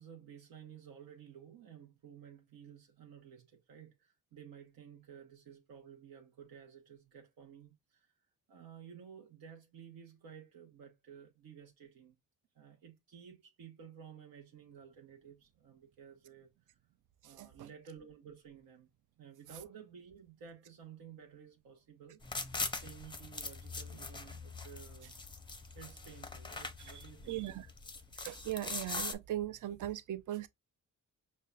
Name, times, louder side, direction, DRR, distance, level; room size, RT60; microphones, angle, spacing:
voice 1, 0.0-8.1 8.5-12.2 12.5-16.8 17.2-18.9 19.2-22.5 22.8-25.2 25.7-27.4, right 8 dB, 80° right, 0.8 m, -54 dB
voice 2, 17.4-17.7 26.9-27.0 27.3-27.7 28.2-30.5, right 13 dB, 60° right, 0.5 m, -39 dB
sound 1, 22.2-29.1, left 3 dB, 15° left, 0.5 m, -42 dB
5.3 x 2.2 x 2.2 m
cardioid pair, 90°, 34 cm